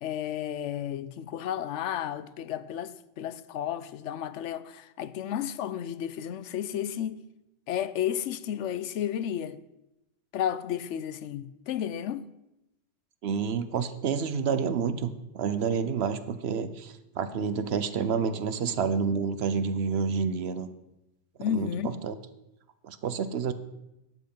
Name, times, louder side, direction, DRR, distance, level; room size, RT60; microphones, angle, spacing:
voice 1, 0.0-7.3 7.7-9.6 10.3-12.2 21.4-22.0, left 10 dB, 80° left, 0.9 m, -32 dB
voice 2, 13.2-20.7 21.5-21.7 22.0-22.1 22.8-23.5, right 6 dB, 70° right, 0.9 m, -29 dB
11.0 x 7.7 x 5.4 m
omnidirectional pair, 1.2 m